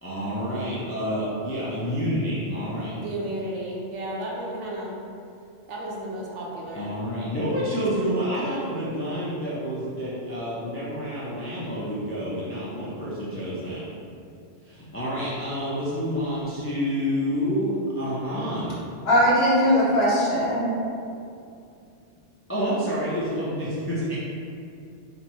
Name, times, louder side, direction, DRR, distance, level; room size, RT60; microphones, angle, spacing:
voice 1, 0.0-2.9 6.7-13.8 14.7-18.8 22.5-24.2, equal, 15° left, -9 dB, 0.4 m, -28 dB
voice 2, 2.9-4.9 5.7-6.9, right 1 dB, 70° right, -4 dB, 1.0 m, -33 dB
voice 3, 19.1-20.7, equal, 55° left, -8 dB, 1.2 m, -20 dB
4.1 x 2.1 x 4.3 m, 2.5 s
omnidirectional pair, 1.2 m